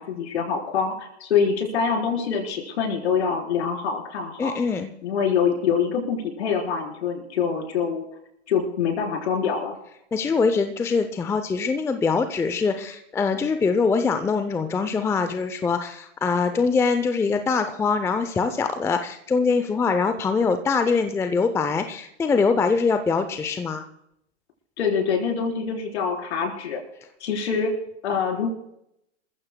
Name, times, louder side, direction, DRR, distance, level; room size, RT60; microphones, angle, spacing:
voice 1, 0.0-4.5 5.0-8.0 8.5-9.8 24.8-26.8 27.2-27.7 28.0-28.5, left 6 dB, 65° left, 2 dB, 4.3 m, -25 dB
voice 2, 4.4-4.9 10.1-23.8, left 4 dB, 5° left, 8 dB, 0.6 m, -23 dB
27.0 x 15.0 x 2.3 m, 0.79 s
hypercardioid pair, 120°, 36 cm